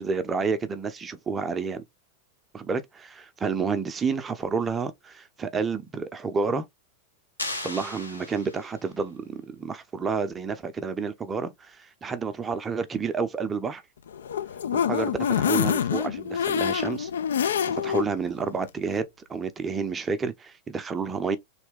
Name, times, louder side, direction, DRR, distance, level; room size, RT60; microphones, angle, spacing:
voice 1, 0.0-1.8 2.5-6.7 7.6-13.8 14.7-17.1 17.7-21.4, right 5 dB, 20° right, 0.5 m, -30 dB
sound 1, 7.4-8.9, left 2 dB, 85° left, 0.8 m, -36 dB
sound 2, 14.1-18.1 18.5-18.6 18.9-19.0, left 8 dB, 65° left, 0.4 m, -26 dB
3.1 x 2.8 x 3.3 m
figure-of-eight pair, 90°, 0 cm